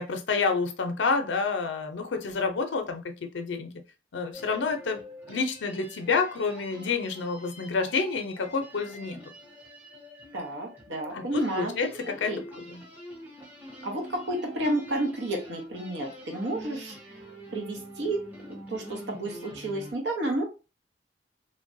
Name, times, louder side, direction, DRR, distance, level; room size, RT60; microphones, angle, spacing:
voice 1, 0.0-3.7 4.1-5.0 5.3-9.2 11.1-12.8, left 4 dB, 80° left, 0.5 m, -29 dB
sound 1, 4.3-19.9, equal, 10° right, 0.7 m, -46 dB
voice 2, 10.3-11.7 12.3-12.4 13.8-17.2 17.5-20.4, right 1 dB, 80° right, 1.0 m, -31 dB
3.2 x 2.2 x 2.6 m
head